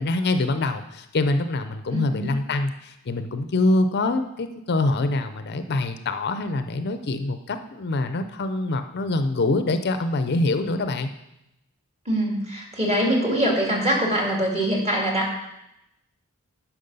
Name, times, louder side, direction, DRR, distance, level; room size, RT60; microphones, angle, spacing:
voice 1, 0.0-11.1, left 2 dB, 50° left, 9 dB, 0.5 m, -25 dB
voice 2, 1.9-2.3 12.1-15.4, right 1 dB, 30° right, -1 dB, 2.3 m, -23 dB
10.5 x 6.0 x 5.4 m, 0.88 s
head